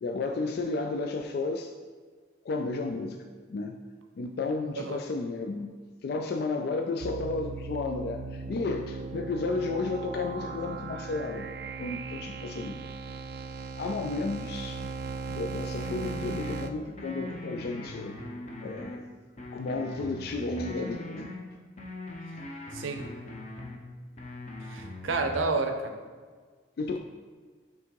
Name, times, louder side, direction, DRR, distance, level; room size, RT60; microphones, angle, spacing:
voice 1, 0.0-1.7 2.4-3.8 4.2-5.8 6.0-11.5 11.8-12.8 13.8-14.9 15.3-18.2 18.6-19.1 19.5-21.3 26.8-27.0, left 3 dB, 50° left, 4 dB, 0.3 m, -32 dB
sound 1, 7.0-16.7, right 4 dB, 55° right, 0.3 m, -38 dB
sound 2, 15.8-16.6 17.0-19.0 19.4-21.4 21.8-23.8 24.2-25.4, left 2 dB, 35° left, 0.8 m, -41 dB
voice 2, 24.7-25.9, right 3 dB, 80° right, 5 dB, 0.7 m, -30 dB
5.9 x 3.6 x 4.6 m, 1.5 s
head